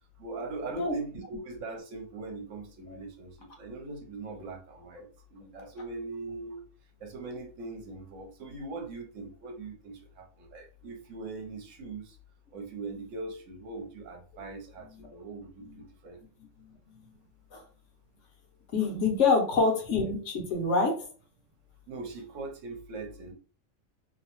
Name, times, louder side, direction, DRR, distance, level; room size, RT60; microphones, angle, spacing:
voice 1, 0.2-6.6 7.0-12.2 12.5-16.2 21.9-23.3, right 3 dB, 70° right, 3 dB, 1.0 m, -41 dB
voice 2, 16.6-17.0 17.5-17.6 18.7-21.1, left 4 dB, 65° left, 3 dB, 1.0 m, -27 dB
2.7 x 2.1 x 2.9 m, 0.38 s
omnidirectional pair, 1.4 m